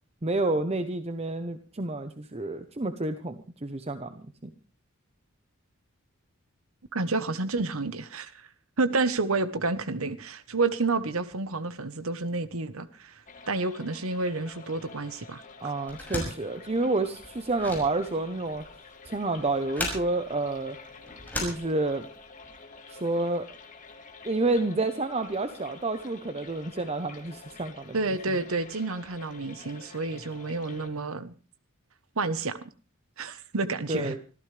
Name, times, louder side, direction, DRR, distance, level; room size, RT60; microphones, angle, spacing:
voice 1, 0.2-4.5 15.6-18.6 19.1-20.8 21.4-22.1 22.9-23.5 24.2-28.0 33.9-34.2, right 2 dB, 30° right, 0.9 m, -29 dB
voice 2, 6.9-8.5 8.8-15.7 27.9-31.3 32.1-32.6 33.2-34.2, right 3 dB, 75° right, 1.2 m, -30 dB
sound 1, 13.3-30.9, left 4 dB, 35° left, 2.5 m, -49 dB
sound 2, 15.9-22.2, left 2 dB, 10° left, 6.1 m, -37 dB
25.0 x 14.5 x 3.4 m
head